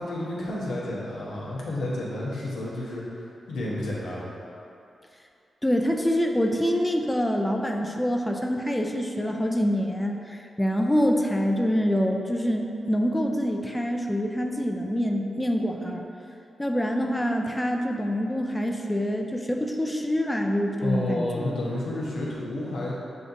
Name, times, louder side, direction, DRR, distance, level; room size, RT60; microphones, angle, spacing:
voice 1, 0.0-3.0 3.5-4.3 20.8-22.9, left 1 dB, 85° left, -6 dB, 0.8 m, -30 dB
voice 2, 5.6-16.0 16.6-21.4, equal, 10° left, 2 dB, 0.4 m, -25 dB
6.5 x 2.4 x 2.6 m, 2.7 s
supercardioid pair, 40°, 0 cm